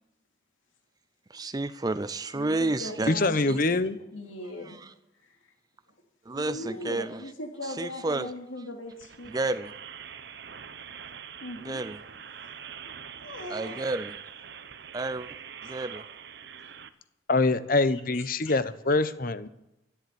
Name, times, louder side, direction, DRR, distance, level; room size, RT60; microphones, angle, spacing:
voice 1, 1.3-3.1 3.5-3.6 4.6-4.9 6.3-7.3 7.6-8.3 9.3-9.7 11.6-12.0 13.5-14.2 14.9-15.3 15.6-16.0, right 2 dB, 20° right, 13 dB, 0.4 m, -31 dB
voice 2, 2.3-3.6 4.1-4.8 6.4-9.3 11.4-11.8 13.2-13.8 15.6-15.7 18.1-18.5, left 1 dB, 85° left, 3 dB, 2.7 m, -39 dB
voice 3, 3.1-4.0 17.3-19.5, left 3 dB, 45° left, 13 dB, 0.9 m, -24 dB
sound 1, 8.9-16.9, right 7 dB, 55° right, 0.9 m, -44 dB
13.0 x 11.0 x 7.0 m, 0.87 s
head